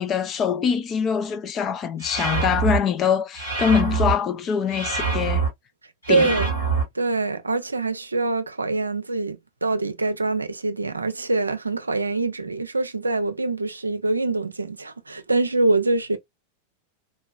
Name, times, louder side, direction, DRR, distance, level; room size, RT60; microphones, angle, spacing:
voice 1, 0.0-5.4 6.1-6.3, left 7 dB, 30° left, 0.6 m, -23 dB
sound 1, 2.0-2.8 3.3-4.1 4.7-5.5 6.0-6.8, right 5 dB, 85° left, 2.4 m, -24 dB
voice 2, 6.1-6.5 6.9-16.2, right 3 dB, 80° right, 0.5 m, -24 dB
4.0 x 2.9 x 2.2 m
figure-of-eight pair, 90°, 0 cm